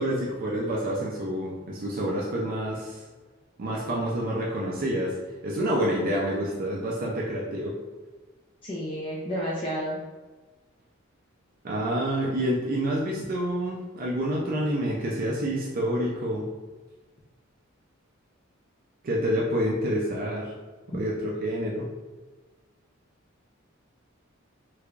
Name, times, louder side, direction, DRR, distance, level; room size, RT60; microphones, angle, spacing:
voice 1, 0.0-3.0 3.6-5.2 5.4-7.7 11.6-16.4 19.0-20.5 20.9-21.8, equal, 45° right, -3 dB, 0.4 m, -28 dB
voice 2, 8.6-10.0, equal, 25° left, -7 dB, 0.5 m, -31 dB
3.3 x 3.2 x 2.4 m, 1.3 s
head